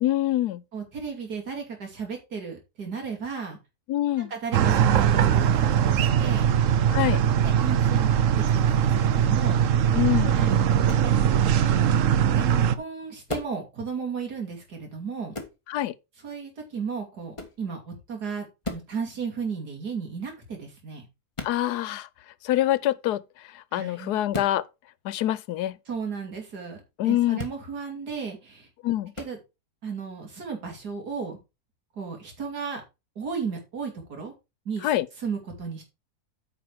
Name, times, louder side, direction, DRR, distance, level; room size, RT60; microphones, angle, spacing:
voice 1, 0.0-0.6 3.9-4.3 6.9-7.2 9.9-10.4 15.7-15.9 21.4-22.1 22.4-23.2 23.5-24.6 25.0-25.8 27.0-27.4 28.8-29.1 34.8-35.1, left 13 dB, 85° left, 1.2 m, -25 dB
voice 2, 0.7-3.6 4.2-6.5 7.4-9.6 10.3-10.6 11.0-11.1 11.4-11.6 12.3-12.5 12.7-15.3 16.2-21.1 23.7-24.2 25.9-28.7 29.2-29.4 29.8-31.4 32.0-32.8 33.2-34.3 34.6-34.9 35.2-35.8, right 5 dB, 80° right, 3.3 m, -34 dB
sound 1, 4.5-12.8, right 9 dB, 60° right, 1.0 m, -21 dB
sound 2, 10.8-11.1 13.3-13.6 15.3-15.6 17.3-17.6 18.6-18.9 21.3-21.6 24.3-24.6 27.3-27.6 29.1-29.3, left 2 dB, 20° left, 1.5 m, -35 dB
9.0 x 5.5 x 4.6 m
omnidirectional pair, 1.7 m